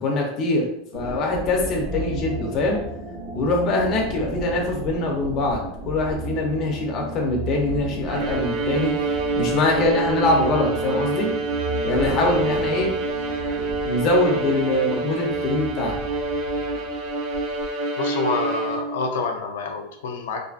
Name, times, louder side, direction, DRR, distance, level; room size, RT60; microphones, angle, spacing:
voice 1, 0.0-0.7 0.9-2.8 3.3-8.9 9.4-11.3 11.8-12.9 13.8-16.0, left 2 dB, 30° left, 0 dB, 0.5 m, -23 dB
sound 1, 0.9-17.7, equal, 85° right, 0.8 m, -34 dB
Bowed string instrument, 8.1-19.1, right 3 dB, 40° right, 0.3 m, -27 dB
voice 2, 18.0-20.4, left 4 dB, 90° left, 3 dB, 0.4 m, -27 dB
2.5 x 2.4 x 2.4 m, 0.75 s
supercardioid pair, 175°, 0 cm